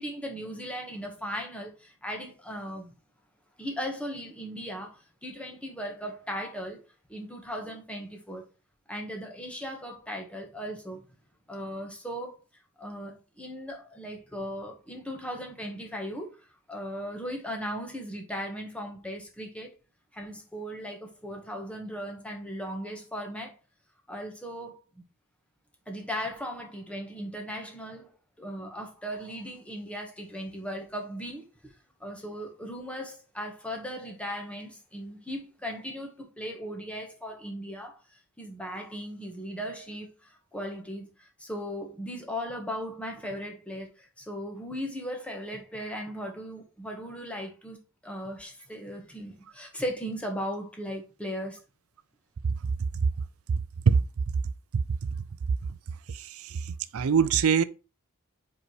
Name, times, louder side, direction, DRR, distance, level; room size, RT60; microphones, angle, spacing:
voice 1, 0.0-2.9 3.6-6.8 7.1-8.4 8.9-11.0 11.5-12.4 12.8-16.3 16.7-19.7 20.1-23.6 24.1-24.8 25.9-28.1 28.4-31.5 32.0-38.0 38.4-51.6, equal, 5° left, 1.6 m, -37 dB
voice 2, 56.1-57.6, right 6 dB, 80° right, 0.4 m, -24 dB
5.1 x 4.8 x 4.7 m
head